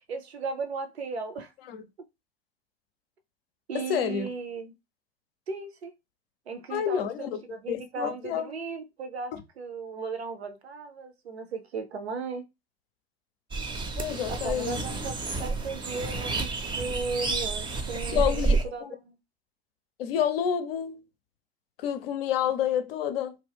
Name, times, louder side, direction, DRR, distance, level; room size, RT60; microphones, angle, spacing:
voice 1, 0.1-1.5 3.7-4.7 5.5-5.9 6.5-12.5 14.3-19.2, right 4 dB, 80° right, 0.6 m, -36 dB
voice 2, 3.7-4.3 6.7-7.4 7.7-8.5 14.0-14.8 18.1-18.9 20.0-21.0 21.8-23.4, left 9 dB, 65° left, 0.5 m, -29 dB
sound 1, 13.5-18.6, right 3 dB, 15° right, 0.4 m, -30 dB
2.3 x 2.0 x 3.4 m
figure-of-eight pair, 75°, 32 cm